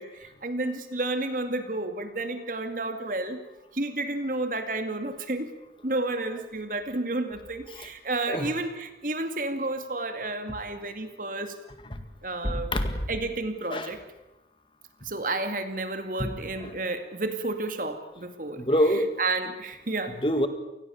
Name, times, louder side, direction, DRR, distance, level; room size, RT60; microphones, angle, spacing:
voice 1, 0.0-3.4 3.7-5.5 5.8-11.5 12.2-12.7 13.1-14.0 15.0-18.6 19.2-20.2, right 2 dB, 50° right, 8 dB, 2.3 m, -31 dB
voice 2, 12.4-12.9 13.7-14.0 16.2-16.3 16.6-16.7 18.6-19.1 20.2-20.5, equal, 30° left, 8 dB, 1.9 m, -26 dB
28.0 x 19.5 x 7.2 m, 0.95 s
head